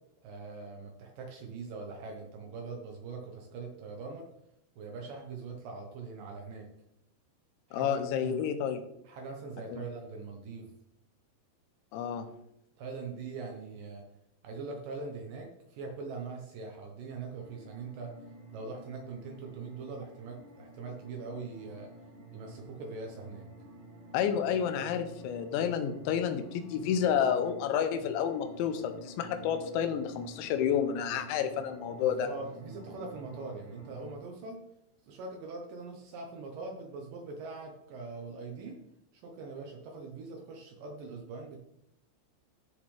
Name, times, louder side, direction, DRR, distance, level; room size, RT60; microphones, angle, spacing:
voice 1, 0.2-4.2 4.8-6.7 7.7-8.4 9.1-10.7 12.8-14.0 14.4-18.1 18.5-21.9 22.3-23.5 32.0-34.6 35.1-38.8 39.1-41.6, right 4 dB, 75° right, 2 dB, 2.1 m, -42 dB
voice 2, 7.7-8.8 9.7-9.8 11.9-12.3 24.1-32.3, left 8 dB, 85° left, 9 dB, 2.9 m, -30 dB
sound 1, 17.4-34.1, right 1 dB, 90° right, 5.9 m, -50 dB
13.0 x 6.8 x 3.3 m, 0.81 s
omnidirectional pair, 5.5 m